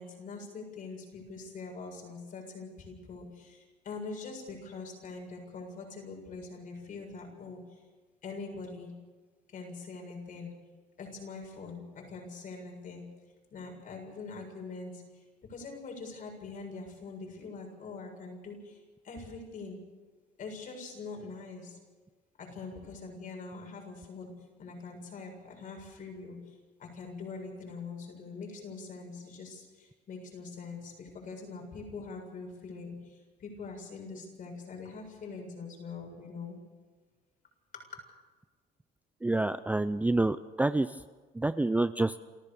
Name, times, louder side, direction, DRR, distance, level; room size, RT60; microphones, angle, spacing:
voice 1, 0.0-7.8 8.2-8.9 9.5-10.5 11.0-13.0 13.5-15.2 15.5-19.8 20.4-21.8 22.4-24.3 24.6-36.6 37.7-38.0, left 4 dB, 50° left, 2 dB, 7.6 m, -43 dB
voice 2, 39.2-40.9 41.4-42.1, right 2 dB, 10° right, 13 dB, 0.5 m, -27 dB
28.5 x 14.0 x 7.0 m, 1.3 s
cardioid pair, 110°, 17 cm